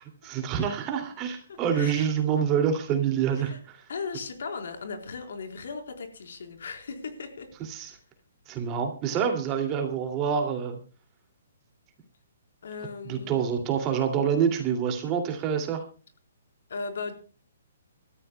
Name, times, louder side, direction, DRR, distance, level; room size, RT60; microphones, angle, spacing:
voice 1, 0.0-3.8 7.7-7.9 8.5-10.8 13.0-15.8, right 7 dB, 20° right, 5 dB, 2.5 m, -27 dB
voice 2, 3.9-7.5 12.6-13.4 16.7-17.1, left 4 dB, 65° left, 5 dB, 4.0 m, -37 dB
26.5 x 14.0 x 2.3 m, 0.35 s
hypercardioid pair, 170°, 0 cm